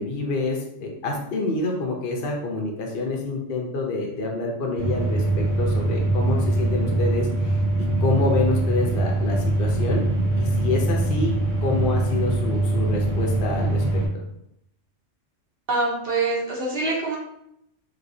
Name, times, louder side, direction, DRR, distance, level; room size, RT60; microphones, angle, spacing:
voice 1, 0.0-10.0 10.4-11.3 11.6-13.8, left 3 dB, 55° left, 0 dB, 0.7 m, -27 dB
sound 1, 4.8-14.1, right 2 dB, 70° right, 1.2 m, -23 dB
voice 2, 15.7-17.2, right 3 dB, 50° right, -4 dB, 1.0 m, -24 dB
3.1 x 2.9 x 2.6 m, 0.76 s
omnidirectional pair, 1.3 m